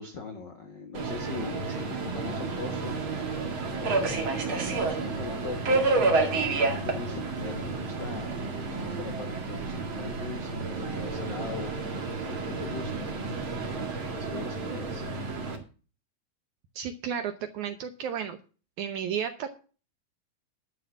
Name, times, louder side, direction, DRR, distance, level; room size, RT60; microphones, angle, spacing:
voice 1, 0.0-6.4 6.7-13.6 14.1-15.1, left 4 dB, 75° left, 5 dB, 1.0 m, -41 dB
Subway metro underground, 0.9-15.6, right 3 dB, 40° right, 2.4 m, -30 dB
voice 2, 16.8-18.4 18.8-19.6, right 8 dB, 75° right, 9 dB, 1.8 m, -33 dB
11.5 x 5.6 x 6.9 m, 0.36 s
omnidirectional pair, 4.3 m